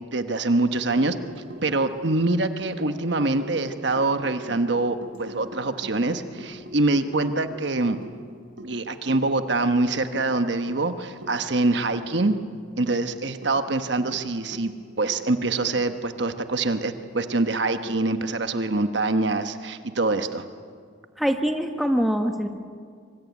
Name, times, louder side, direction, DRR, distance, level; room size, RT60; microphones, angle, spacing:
voice 1, 0.1-1.2 1.6-8.0 8.6-12.4 12.8-14.7 15.0-20.4, right 2 dB, 60° right, 8 dB, 1.2 m, -24 dB
sound 1, 0.9-18.0, equal, 90° right, 3.5 m, -43 dB
voice 2, 21.2-22.5, equal, ahead, 5 dB, 1.5 m, -23 dB
25.5 x 24.5 x 9.5 m, 2.1 s
head